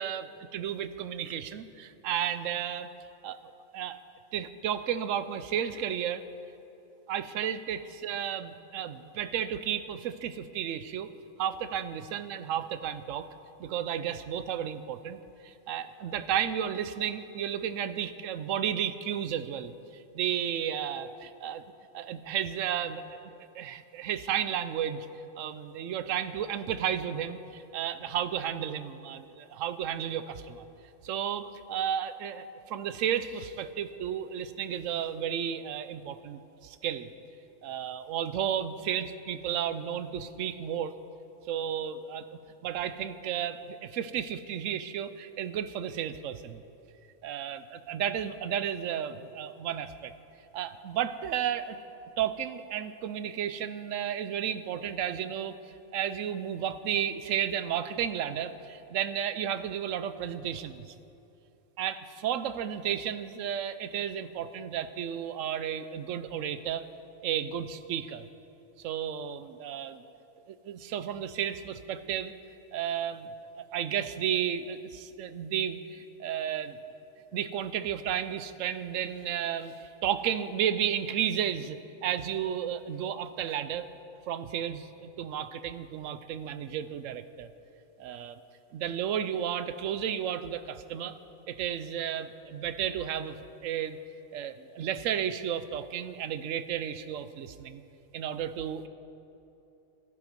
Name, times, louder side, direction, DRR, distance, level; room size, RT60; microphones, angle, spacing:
voice 1, 0.0-2.9 3.2-4.0 4.3-6.2 7.1-11.1 11.4-13.3 13.6-15.2 15.4-21.6 21.9-23.2 23.5-25.1 25.4-30.6 31.0-37.1 37.6-40.9 41.5-46.6 47.2-50.1 50.5-51.8 52.2-55.6 55.9-60.9 61.8-66.9 67.2-68.3 68.8-70.0 70.5-72.3 72.7-76.8 77.3-83.9 84.3-87.5 88.0-88.4 88.7-91.2 91.5-93.3 93.6-94.0 94.3-97.8 98.1-98.9, right 9 dB, 85° right, 12 dB, 1.0 m, -33 dB
14.5 x 11.0 x 5.3 m, 2.9 s
omnidirectional pair, 1.3 m